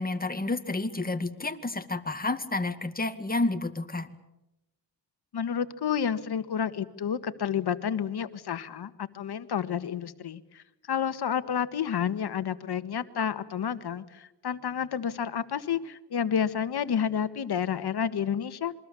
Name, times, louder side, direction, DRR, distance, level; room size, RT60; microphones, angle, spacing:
voice 1, 0.0-4.1, left 2 dB, 20° left, 8 dB, 2.1 m, -30 dB
voice 2, 5.3-18.7, left 8 dB, 65° left, 11 dB, 1.6 m, -30 dB
27.0 x 23.5 x 7.0 m, 0.92 s
cardioid pair, 90°, 42 cm